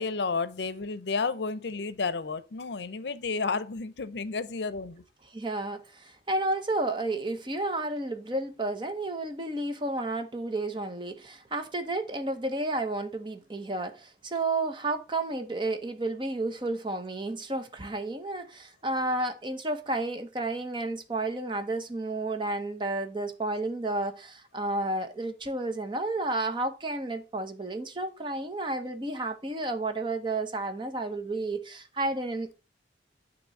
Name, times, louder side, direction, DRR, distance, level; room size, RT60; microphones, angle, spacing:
voice 1, 0.0-5.0, left 4 dB, 75° left, 0.6 m, -31 dB
voice 2, 5.3-32.5, right 2 dB, 25° right, 0.8 m, -31 dB
9.0 x 3.0 x 5.3 m
head